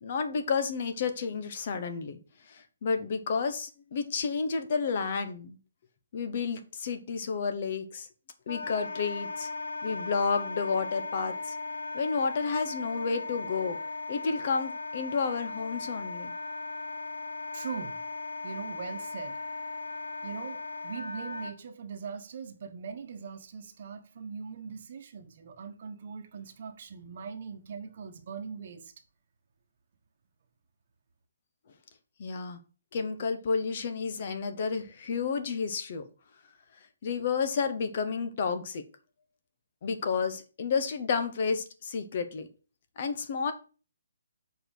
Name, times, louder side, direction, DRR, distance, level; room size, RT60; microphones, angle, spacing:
voice 1, 0.0-2.2 2.5-5.6 6.1-8.1 8.5-9.5 9.8-11.6 11.9-13.8 14.1-16.3 32.2-32.6 32.9-36.0 37.0-38.8 39.8-42.5 43.0-43.5, left 5 dB, 40° left, 1.1 m, -31 dB
Wind instrument woodwind instrument, 8.5-21.5, left 3 dB, 80° left, 1.1 m, -37 dB
voice 2, 17.5-18.0 18.4-19.4 20.2-28.9, right 6 dB, 40° right, 1.2 m, -41 dB
7.6 x 4.6 x 6.3 m
hypercardioid pair, 170°, 0 cm